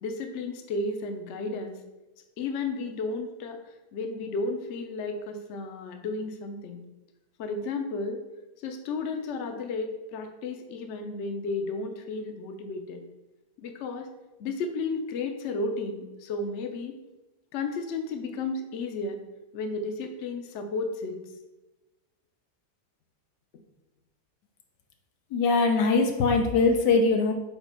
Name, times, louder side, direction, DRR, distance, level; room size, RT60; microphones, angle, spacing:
voice 1, 0.0-1.8 2.4-3.6 3.9-6.8 7.4-8.2 8.6-13.0 13.6-14.1 14.4-17.0 17.5-19.2 19.5-21.2, left 3 dB, 60° left, 6 dB, 0.9 m, -33 dB
voice 2, 25.3-27.3, left 4 dB, 90° left, 4 dB, 1.4 m, -22 dB
5.2 x 4.3 x 5.1 m, 1.0 s
omnidirectional pair, 1.7 m